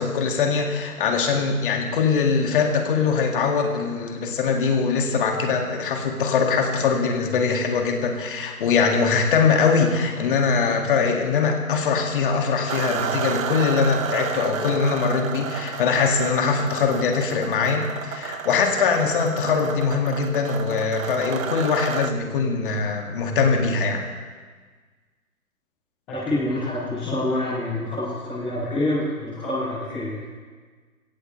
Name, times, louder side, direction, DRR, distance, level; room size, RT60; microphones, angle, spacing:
voice 1, 0.0-24.0, left 5 dB, 35° left, 2 dB, 2.4 m, -22 dB
sound 1, 12.7-22.1, right 7 dB, 60° right, 0.8 m, -31 dB
voice 2, 26.1-30.2, left 1 dB, ahead, -12 dB, 0.6 m, -26 dB
23.5 x 16.5 x 3.3 m, 1.5 s
figure-of-eight pair, 145°, 44 cm